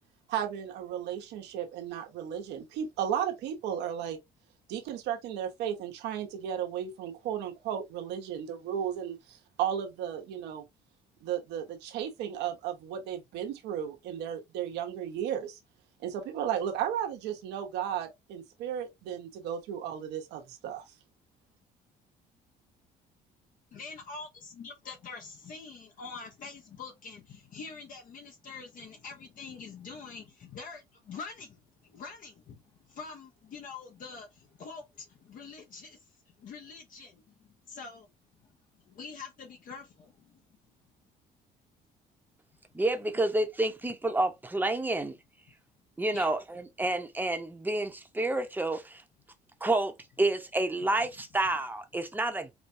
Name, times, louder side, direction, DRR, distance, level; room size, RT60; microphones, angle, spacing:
voice 1, 0.3-4.2 4.7-10.6 11.2-15.6 16.0-20.9, right 9 dB, 90° right, 1.1 m, -34 dB
voice 2, 23.7-36.0 36.4-38.1 38.9-40.4 46.1-46.3, left 5 dB, 55° left, 0.9 m, -45 dB
voice 3, 42.7-45.1 46.0-49.0 49.6-52.5, right 2 dB, 10° right, 0.9 m, -29 dB
4.7 x 2.2 x 2.7 m
cardioid pair, 110°, 17 cm